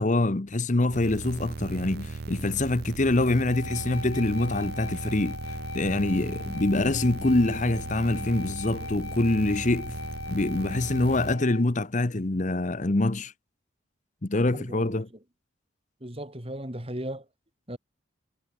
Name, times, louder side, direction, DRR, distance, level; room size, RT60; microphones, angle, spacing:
voice 1, 0.0-5.4 5.7-9.9 10.3-13.3 14.2-15.1, left 2 dB, 35° left, 0.9 m, -25 dB
sound 1, 0.9-11.3, right 3 dB, 50° right, 0.6 m, -37 dB
sound 2, 3.4-11.6, left 4 dB, 85° left, 5.7 m, -40 dB
voice 2, 14.5-15.0 16.0-17.2 17.7-17.8, right 1 dB, 30° right, 3.1 m, -36 dB
head